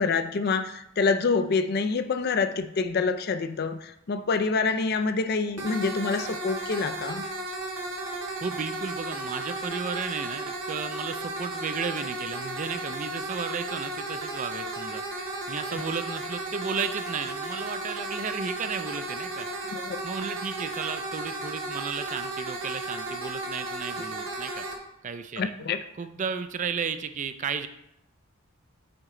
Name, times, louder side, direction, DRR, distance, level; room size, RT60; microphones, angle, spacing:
voice 1, 0.0-7.2 19.7-20.0 25.4-25.8, left 4 dB, 45° left, 9 dB, 0.4 m, -26 dB
sound 1, 5.6-24.7, right 2 dB, 60° right, 1.2 m, -34 dB
voice 2, 8.4-15.0 15.5-19.5 20.0-24.6 25.0-25.5 25.9-27.7, right 6 dB, 35° right, 10 dB, 0.4 m, -34 dB
7.8 x 4.3 x 3.7 m, 0.80 s
head